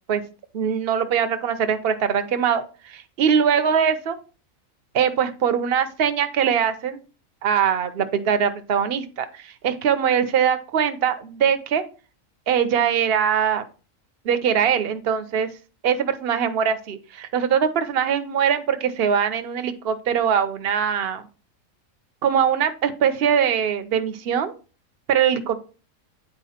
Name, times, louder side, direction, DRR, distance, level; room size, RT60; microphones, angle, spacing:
voice 1, 0.5-4.2 4.9-7.0 7.4-11.8 12.5-13.7 14.2-15.5 15.8-21.2 22.2-24.5 25.1-25.6, right 8 dB, 50° right, 9 dB, 0.9 m, -22 dB
9.1 x 4.4 x 4.3 m, 0.35 s
omnidirectional pair, 1.4 m